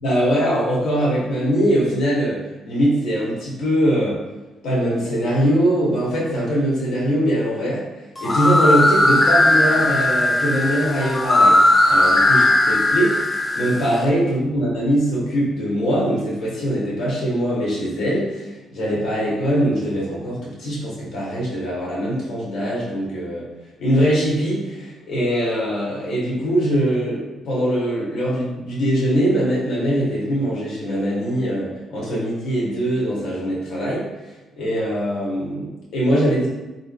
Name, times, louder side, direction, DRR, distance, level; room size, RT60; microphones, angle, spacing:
voice 1, 0.0-4.2 4.6-7.8 8.2-11.6 11.8-13.2 13.5-23.5 23.8-34.1 34.6-36.5, equal, 80° left, -6 dB, 1.3 m, -22 dB
sound 1, 8.2-14.0, left 1 dB, 25° left, 0.4 m, -17 dB
3.8 x 2.7 x 2.6 m, 1.1 s
cardioid pair, 90°, 0 cm